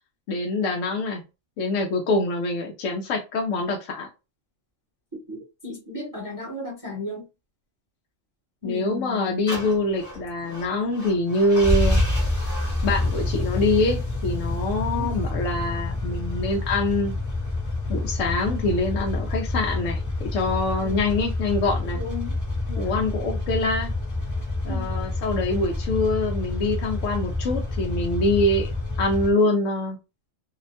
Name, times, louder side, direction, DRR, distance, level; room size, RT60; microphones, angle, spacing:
voice 1, 0.3-1.2 1.6-4.1 8.6-12.0 12.8-17.1 17.9-22.0 22.8-23.9 24.6-28.7 29.0-30.0, left 2 dB, 80° left, 0.9 m, -25 dB
voice 2, 5.3-7.2 8.6-9.5 14.9-15.2 20.8-21.1 22.0-22.4 22.7-22.9 24.7-24.9, left 2 dB, 20° right, 0.7 m, -35 dB
sound 1, 9.5-29.3, left 2 dB, 15° left, 0.8 m, -28 dB
2.7 x 2.1 x 2.7 m
omnidirectional pair, 1.3 m